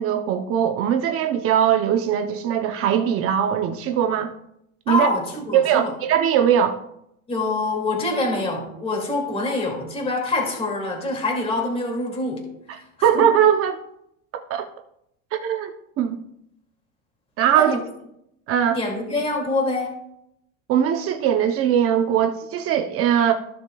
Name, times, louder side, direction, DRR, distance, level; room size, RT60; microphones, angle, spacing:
voice 1, 0.0-4.3 4.9-5.1 5.5-6.8 13.0-13.8 14.5-14.7 15.3-16.2 17.4-17.7 18.5-18.8 20.7-23.3, right 9 dB, 35° right, 0.6 m, -20 dB
voice 2, 4.9-5.9 7.3-12.4 12.7-13.3 17.5-17.8 18.7-20.0, left 2 dB, 15° left, 2.3 m, -25 dB
15.5 x 6.5 x 2.3 m
cardioid pair, 165°, 39 cm